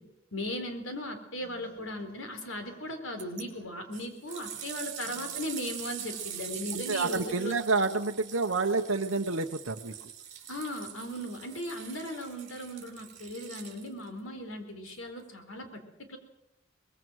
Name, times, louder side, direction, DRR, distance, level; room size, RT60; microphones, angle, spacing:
voice 1, 0.3-7.5 10.5-16.2, left 1 dB, 90° left, 6 dB, 4.1 m, -38 dB
sound 1, 1.4-6.7, equal, 70° left, 6.0 m, -57 dB
sound 2, 3.2-3.4 3.9-14.1 14.9-15.0, right 10 dB, 40° right, 4.8 m, -43 dB
voice 2, 6.7-9.9, right 3 dB, 75° right, 2 dB, 1.0 m, -29 dB
23.5 x 21.5 x 6.4 m, 0.88 s
head